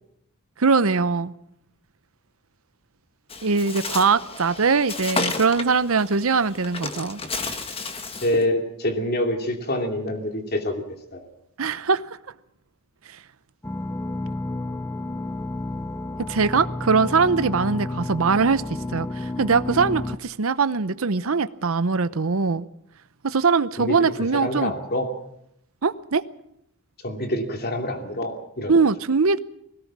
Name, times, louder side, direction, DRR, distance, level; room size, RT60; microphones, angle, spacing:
voice 1, 0.6-1.3 3.4-7.2 11.6-12.0 16.3-18.6 18.9-22.7 23.2-24.7 25.8-26.2 28.7-29.4, right 4 dB, 65° right, 0.8 m, -21 dB
Bird, 3.3-8.4, left 3 dB, 25° left, 1.4 m, -32 dB
voice 2, 8.2-11.3 23.8-25.1 27.0-28.8, left 1 dB, 45° left, 2.7 m, -26 dB
sound 1, 13.6-20.2, left 2 dB, 10° left, 0.8 m, -31 dB
20.5 x 18.0 x 7.4 m
head